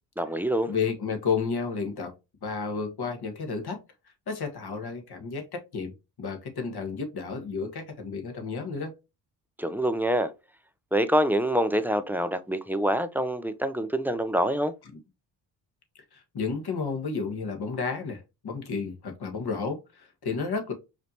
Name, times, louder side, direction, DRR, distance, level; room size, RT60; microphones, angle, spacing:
voice 1, 0.2-0.7 9.6-10.3 10.9-14.7, equal, 5° right, 0.5 m, -26 dB
voice 2, 0.7-2.1 2.4-3.8 4.3-5.9 6.2-8.9 16.1-20.7, left 5 dB, 50° left, 1.5 m, -32 dB
5.0 x 2.9 x 2.7 m
supercardioid pair, 50°, 49 cm